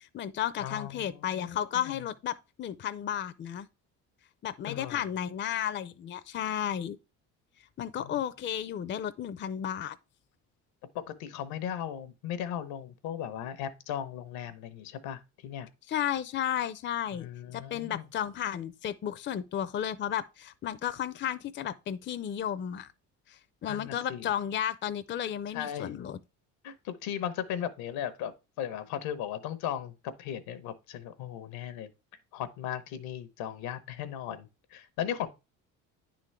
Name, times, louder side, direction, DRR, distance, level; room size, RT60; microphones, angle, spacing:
voice 1, 0.0-3.7 4.4-7.0 7.8-10.0 15.9-17.3 17.5-22.9 23.3-26.2, left 10 dB, 30° left, 0.5 m, -33 dB
voice 2, 0.6-2.0 4.7-5.1 8.0-8.2 10.9-15.7 17.1-18.0 23.6-24.3 25.5-26.0 26.6-31.9 32.3-35.3, left 10 dB, 85° left, 0.9 m, -37 dB
9.5 x 3.8 x 3.2 m
supercardioid pair, 90°, 36 cm